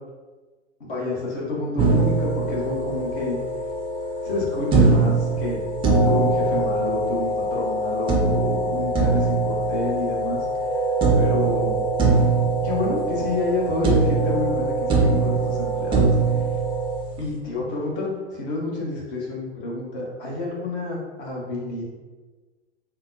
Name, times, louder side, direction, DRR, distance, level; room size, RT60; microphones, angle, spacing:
voice 1, 0.8-3.4 4.2-5.6 6.0-10.5 10.8-11.8 12.6-16.1 17.2-21.8, left 2 dB, 50° left, -3 dB, 1.2 m, -29 dB
sound 1, 1.8-17.0, equal, 80° left, 1.1 m, -27 dB
sound 2, 1.8-3.3 4.7-7.3 8.1-10.7 11.0-13.6 13.8-17.3, right 4 dB, 15° right, 0.4 m, -22 dB
3.9 x 2.2 x 2.7 m, 1.3 s
figure-of-eight pair, 95°, 34 cm